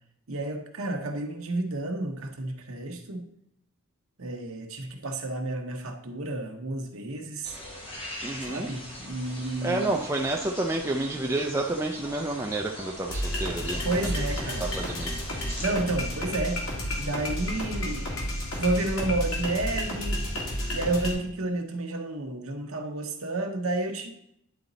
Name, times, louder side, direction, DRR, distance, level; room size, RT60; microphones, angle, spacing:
voice 1, 0.3-3.2 4.2-7.6 8.5-10.0 13.8-14.7 15.6-16.6 17.0-18.1 18.6-20.3 20.7-24.1, right 2 dB, 75° right, 4 dB, 0.9 m, -31 dB
sound 1, 7.4-15.7, left 1 dB, 25° left, 1.2 m, -42 dB
voice 2, 8.2-8.7 9.6-14.1 14.8-15.1, right 2 dB, 10° right, 1 dB, 0.3 m, -29 dB
sound 2, 13.1-21.1, equal, 75° left, 1.9 m, -31 dB
9.8 x 4.0 x 4.0 m, 0.75 s
head